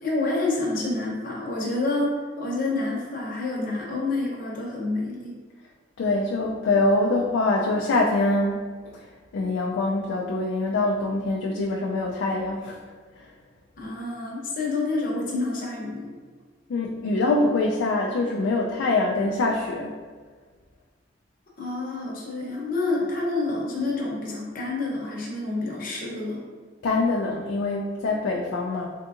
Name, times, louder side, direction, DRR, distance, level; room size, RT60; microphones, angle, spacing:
voice 1, 0.0-5.3 13.8-16.1 21.6-26.4, left 2 dB, 45° left, -4 dB, 0.8 m, -28 dB
voice 2, 6.0-8.6 8.9-9.1 9.3-12.8 13.2-13.3 16.7-20.0 26.8-28.9, left 2 dB, 85° left, -1 dB, 0.3 m, -24 dB
3.5 x 2.7 x 2.4 m, 1.5 s
head